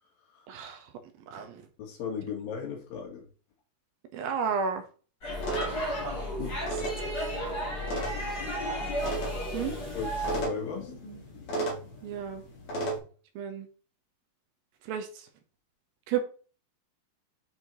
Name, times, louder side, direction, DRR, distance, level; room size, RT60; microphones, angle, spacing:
voice 1, 0.5-0.9 1.3-1.6 4.1-4.9 8.7-8.9 9.5-9.7 12.0-12.4 13.4-13.7 14.8-15.3 16.1-16.2, right 7 dB, 80° right, 6 dB, 2.8 m, -32 dB
voice 2, 1.8-3.2 6.4-6.6 9.6-10.9, left 7 dB, 75° left, 0 dB, 3.7 m, -37 dB
Speech / Shout / Subway metro underground, 5.2-10.5, equal, 30° left, 2.4 m, -33 dB
sound 1, 5.4-13.0, right 2 dB, 45° left, 2.3 m, -36 dB
7.9 x 4.5 x 4.0 m, 0.39 s
omnidirectional pair, 4.2 m